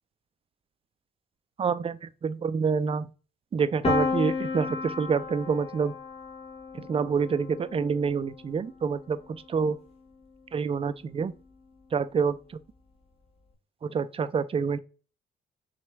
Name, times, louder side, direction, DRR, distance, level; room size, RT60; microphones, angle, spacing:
voice 1, 1.6-3.1 3.5-5.9 6.7-9.2 9.5-9.8 10.5-11.3 11.9-12.4 13.8-14.8, right 5 dB, 30° right, 0.3 m, -27 dB
Piano, 3.8-9.6, left 4 dB, 30° left, 1.1 m, -33 dB
5.8 x 2.2 x 3.3 m
cardioid pair, 90°, 20 cm